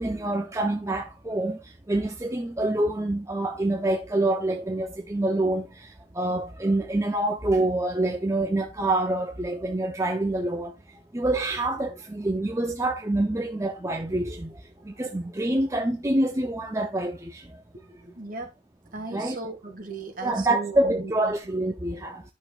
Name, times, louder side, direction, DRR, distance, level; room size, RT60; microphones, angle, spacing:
voice 1, 0.0-10.7 11.1-17.6 19.1-19.4 20.2-22.2, right 2 dB, 15° right, 0.6 m, -26 dB
voice 2, 18.2-18.5 18.9-21.1, right 3 dB, 50° right, 1.9 m, -36 dB
11.0 x 6.2 x 2.5 m
head